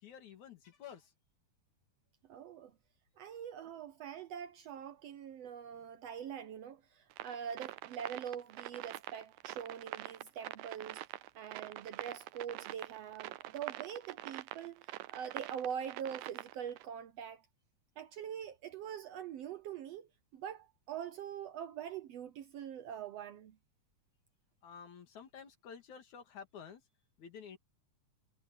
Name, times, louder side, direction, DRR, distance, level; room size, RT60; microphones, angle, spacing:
voice 1, 0.0-1.1 3.3-3.4 24.6-26.8 27.2-27.6, left 7 dB, 70° left, 3.6 m, -51 dB
voice 2, 2.3-2.7 3.2-11.0 11.3-17.5 18.0-23.6, right 8 dB, 70° right, 1.6 m, -44 dB
sound 1, 7.1-16.9, right 16 dB, 85° right, 2.2 m, -45 dB
omnidirectional pair, 3.6 m